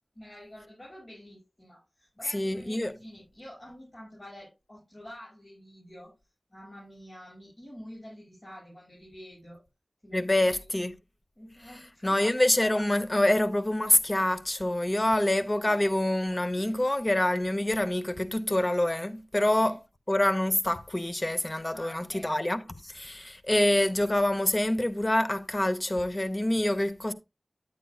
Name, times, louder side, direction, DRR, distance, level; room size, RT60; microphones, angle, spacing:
voice 1, 0.1-6.1 6.5-9.6 10.0-10.7 11.4-12.3 16.5-16.8 19.4-19.8 21.7-22.4, equal, 55° left, 5.8 m, -48 dB
voice 2, 2.3-2.9 10.1-10.9 12.0-19.8 20.1-27.1, left 1 dB, 35° left, 0.8 m, -26 dB
9.1 x 9.0 x 2.3 m
wide cardioid pair, 60°, 0 cm